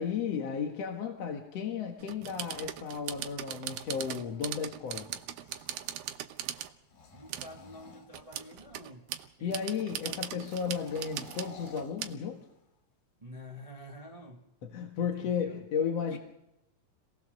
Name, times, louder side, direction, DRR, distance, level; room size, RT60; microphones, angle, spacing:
voice 1, 0.0-5.1 9.4-12.5 14.7-16.2, left 7 dB, 55° left, 2 dB, 2.4 m, -34 dB
sound 1, 2.0-6.7 7.3-7.6 8.1-12.1, right 11 dB, 90° right, 2.7 m, -39 dB
sound 2, 2.5-6.0 6.8-8.8 10.4-12.7, left 3 dB, 80° left, 4.0 m, -55 dB
voice 2, 7.1-9.7 13.2-14.5 15.0-15.7 16.1-16.2, left 1 dB, 35° right, 2 dB, 0.5 m, -49 dB
27.0 x 18.5 x 6.7 m, 0.88 s
omnidirectional pair, 4.0 m